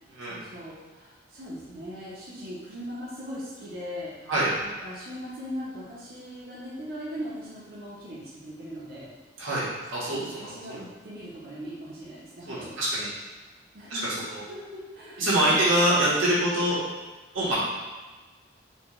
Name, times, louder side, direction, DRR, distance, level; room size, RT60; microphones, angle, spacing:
voice 1, 0.2-4.3 4.6-9.1 10.1-13.0 13.7-14.2 14.5-15.7, equal, 50° right, -7 dB, 0.7 m, -39 dB
voice 2, 9.4-10.8 12.5-13.1 13.9-14.4 15.2-16.8 17.3-17.6, right 1 dB, 80° right, -8 dB, 1.3 m, -25 dB
4.3 x 2.3 x 3.0 m, 1.3 s
head